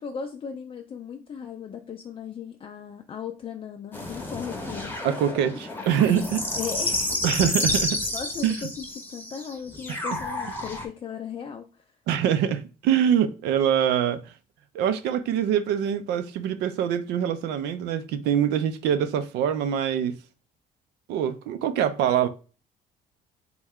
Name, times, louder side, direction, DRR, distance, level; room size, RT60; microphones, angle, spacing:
voice 1, 0.0-5.0 6.5-7.2 8.1-11.9, left 7 dB, 30° left, 0.4 m, -37 dB
sound 1, 3.9-10.9, left 2 dB, 10° left, 0.7 m, -30 dB
voice 2, 5.0-6.4 7.2-8.0 8.4-8.6 9.9-10.0 12.1-14.2 14.7-20.2 21.1-22.3, right 9 dB, 85° right, 0.5 m, -24 dB
3.0 x 2.2 x 3.6 m
cardioid pair, 110°, 17 cm